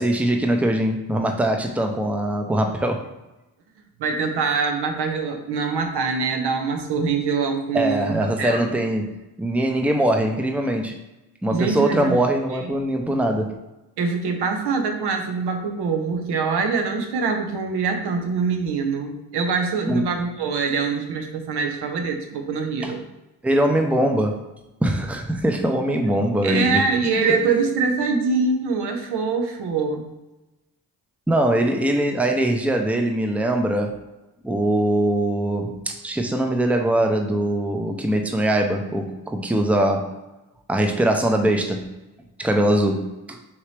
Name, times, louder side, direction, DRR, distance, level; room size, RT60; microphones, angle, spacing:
voice 1, 0.0-3.1 7.7-11.0 11.4-13.6 19.9-20.0 22.8-22.9 23.4-24.4 24.8-26.8 27.3-27.4 31.3-34.0 34.4-40.1 40.7-41.9 42.4-43.4, right 1 dB, 5° right, 4 dB, 0.6 m, -22 dB
voice 2, 4.0-8.7 11.5-12.2 12.5-12.7 14.0-23.0 26.4-30.1, right 4 dB, 75° right, 4 dB, 0.8 m, -24 dB
4.4 x 2.8 x 3.3 m, 1.0 s
supercardioid pair, 50°, 40 cm